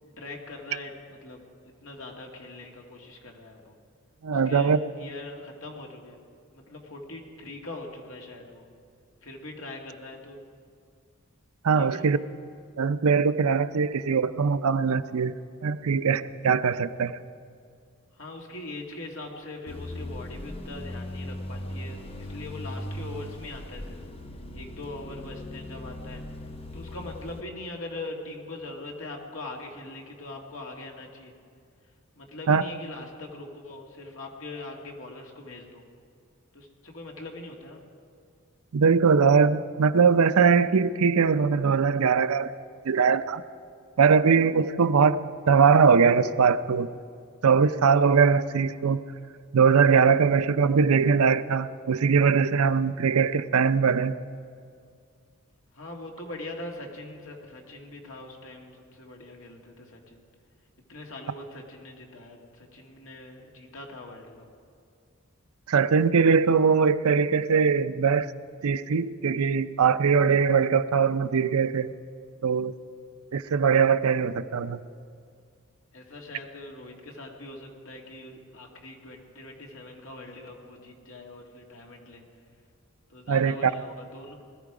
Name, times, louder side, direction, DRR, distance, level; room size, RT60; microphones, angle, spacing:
voice 1, 0.0-3.8 4.3-6.2 6.5-8.6 9.2-10.4 11.8-12.0 18.2-24.0 24.5-26.2 26.7-31.3 32.2-35.8 36.5-37.8 55.7-60.2 60.9-64.5 75.9-82.3 83.1-84.3, left 2 dB, 70° left, 1 dB, 2.1 m, -42 dB
voice 2, 4.2-4.8 11.6-12.2 12.8-15.3 15.6-17.2 32.5-32.6 38.7-42.5 42.8-43.4 44.0-45.2 45.5-46.9 47.4-49.0 49.5-54.1 65.7-68.3 68.6-71.9 72.4-72.7 73.3-74.8 83.3-83.7, right 5 dB, 90° right, 13 dB, 0.5 m, -21 dB
sound 1, 19.7-27.4, left 1 dB, 25° left, 0.7 m, -38 dB
20.5 x 13.5 x 4.9 m, 2.3 s
head